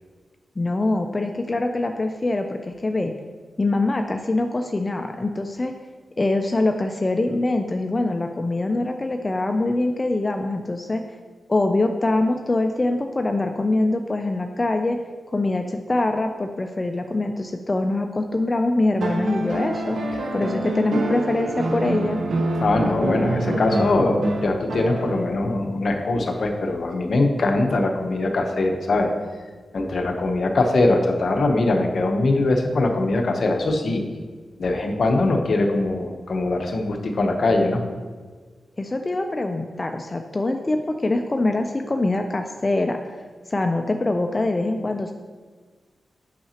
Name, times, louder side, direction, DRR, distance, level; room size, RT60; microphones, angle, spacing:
voice 1, 0.6-3.1 3.6-5.7 6.2-11.0 11.5-15.0 15.3-20.0 20.3-22.2 38.8-43.0 43.5-45.1, left 2 dB, 25° left, 5 dB, 0.4 m, -23 dB
sound 1, 19.0-25.4 26.9-27.0, right 1 dB, 70° right, 0.7 m, -26 dB
voice 2, 22.6-29.1 29.7-34.0 34.6-37.8, left 2 dB, 60° left, 4 dB, 0.8 m, -22 dB
8.6 x 5.7 x 2.9 m, 1.5 s
wide cardioid pair, 90°, 0 cm